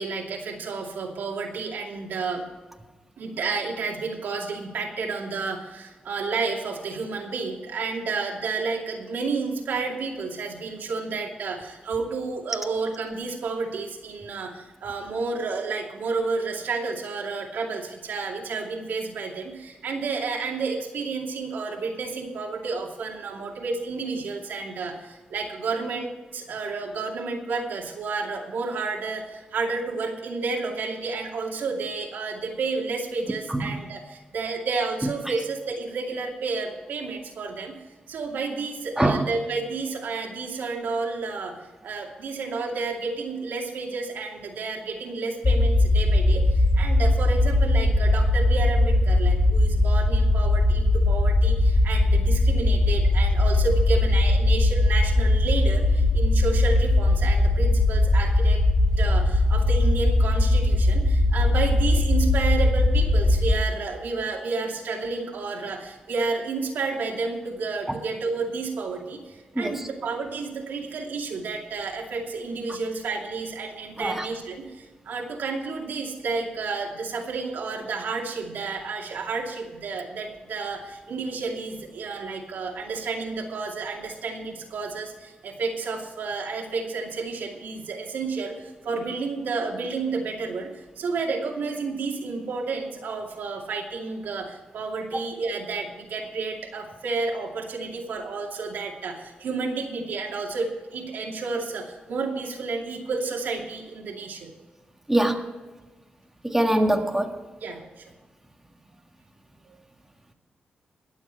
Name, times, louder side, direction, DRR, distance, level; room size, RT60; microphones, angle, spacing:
voice 1, 0.0-2.5 3.2-41.6 41.8-58.6 59.0-104.5 107.6-108.0, right 4 dB, 85° right, 0 dB, 2.5 m, -31 dB
sound 1, 45.4-63.6, left 2 dB, 40° left, 1.3 m, -20 dB
voice 2, 105.1-105.4 106.4-107.3, right 1 dB, 10° right, 2 dB, 1.7 m, -22 dB
21.5 x 7.4 x 4.6 m, 1.2 s
cardioid pair, 90°, 3 cm